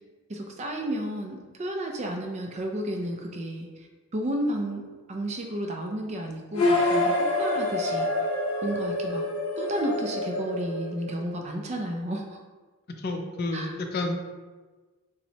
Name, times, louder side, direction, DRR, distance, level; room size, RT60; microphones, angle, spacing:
voice 1, 0.3-3.9 4.1-4.8 5.1-7.1 7.4-8.1 8.6-9.2 9.6-12.4 13.5-13.7, right 1 dB, 30° right, 2 dB, 0.4 m, -32 dB
sound 1, 6.5-11.4, left 2 dB, 85° left, 0.8 m, -27 dB
voice 2, 13.0-14.2, left 2 dB, 45° left, 4 dB, 0.4 m, -30 dB
5.7 x 2.1 x 2.7 m, 1.3 s
head